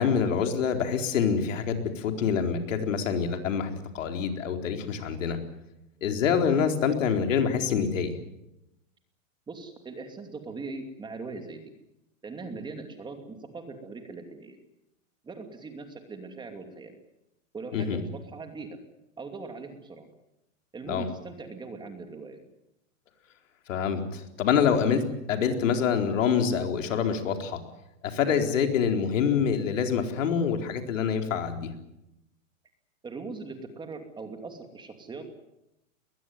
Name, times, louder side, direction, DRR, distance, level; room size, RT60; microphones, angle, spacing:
voice 1, 0.0-3.7 3.9-5.4 6.0-8.1 17.7-18.0 20.9-21.1 23.7-25.0 25.3-27.6 28.0-31.7, left 7 dB, 70° left, 5 dB, 4.3 m, -26 dB
voice 2, 9.5-11.6 12.2-14.6 15.2-16.9 17.5-18.8 19.2-20.1 20.7-22.4 33.0-35.3, right 3 dB, 10° right, 6 dB, 2.6 m, -40 dB
21.5 x 21.0 x 9.5 m, 0.88 s
hypercardioid pair, 145°, 39 cm